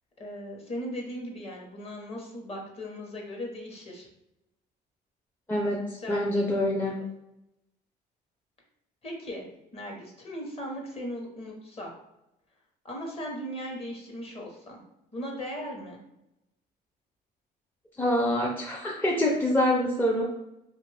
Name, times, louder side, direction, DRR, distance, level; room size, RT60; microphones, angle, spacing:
voice 1, 0.2-4.1 5.9-6.9 9.0-9.4 9.7-11.9 12.8-14.8 15.1-16.0, equal, 35° left, 0 dB, 1.0 m, -38 dB
voice 2, 5.5-5.8 6.1-6.9 18.0-20.3, left 1 dB, 10° left, -3 dB, 0.5 m, -25 dB
2.8 x 2.5 x 3.2 m, 0.87 s
cardioid pair, 110°, 17 cm